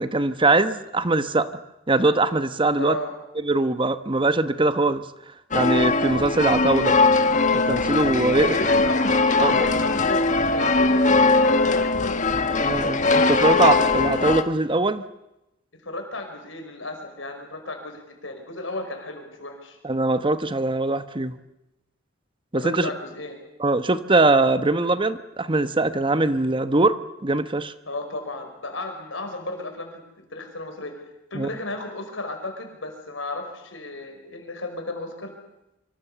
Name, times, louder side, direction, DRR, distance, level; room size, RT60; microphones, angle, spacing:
voice 1, 0.0-1.5 1.9-3.0 3.4-5.0 5.5-7.0 7.5-8.5 9.4-9.7 12.6-15.0 19.8-21.4 22.5-22.9 23.6-27.7 31.3-31.5, right 2 dB, 25° right, 11 dB, 1.1 m, -22 dB
voice 2, 2.8-3.1 8.4-12.3 15.7-19.8 22.5-23.4 27.9-30.0 30.3-30.9 31.3-35.3, left 2 dB, 80° left, 4 dB, 5.6 m, -34 dB
sound 1, 5.5-14.4, left 3 dB, 40° left, 1.4 m, -20 dB
25.0 x 25.0 x 7.0 m, 0.91 s
head